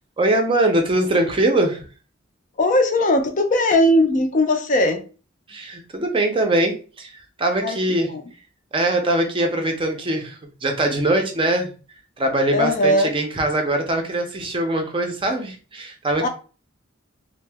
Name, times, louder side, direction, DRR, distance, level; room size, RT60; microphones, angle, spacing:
voice 1, 0.2-1.8 5.5-8.1 8.7-11.7 12.2-16.3, right 1 dB, 25° right, 4 dB, 0.5 m, -22 dB
voice 2, 2.6-5.0 7.6-7.8 8.1-8.2 12.5-13.1 16.2-16.3, left 1 dB, 40° left, 6 dB, 0.4 m, -18 dB
2.7 x 2.0 x 3.3 m, 0.36 s
head